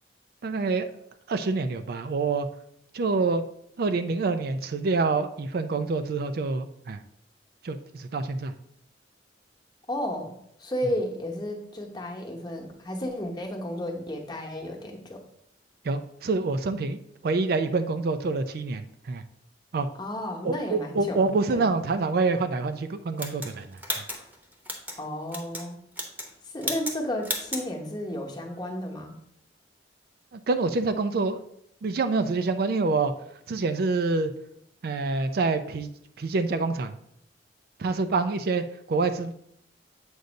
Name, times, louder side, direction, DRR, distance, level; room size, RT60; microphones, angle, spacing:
voice 1, 0.4-0.9 1.3-2.5 2.9-3.4 3.8-7.0 7.6-8.5 15.8-19.2 19.7-19.9 20.4-23.8 30.3-31.4 31.8-33.1 33.5-34.3 34.8-35.9 36.2-36.9 37.8-39.3, right 3 dB, 55° right, 9 dB, 0.4 m, -26 dB
voice 2, 9.9-10.3 10.6-15.2 20.0-21.7 25.0-25.8 26.4-29.2, left 1 dB, 25° left, 0 dB, 1.0 m, -33 dB
sound 1, 23.2-25.0 25.3-25.7 25.9-26.3 26.6-27.0 27.2-27.7, equal, 10° right, 0.9 m, -33 dB
7.9 x 2.6 x 5.1 m, 0.73 s
head